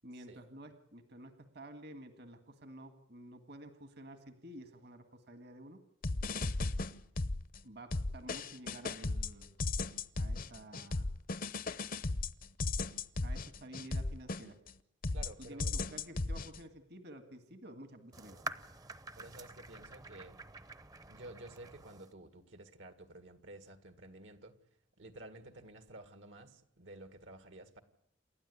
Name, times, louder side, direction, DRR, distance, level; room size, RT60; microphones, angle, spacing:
voice 1, 0.0-5.8 7.6-9.5 10.2-11.1 13.2-14.6 15.4-18.4, right 1 dB, 60° right, 8 dB, 1.9 m, -51 dB
sound 1, 6.0-7.6 7.9-14.7 15.0-16.6, left 3 dB, 50° left, 0.8 m, -36 dB
voice 2, 15.1-15.7 19.2-20.4 21.1-24.6 25.0-27.8, right 1 dB, 75° right, 9 dB, 2.0 m, -52 dB
sound 2, 18.1-22.1, right 2 dB, 20° right, 0.8 m, -47 dB
28.5 x 12.5 x 9.7 m, 0.76 s
head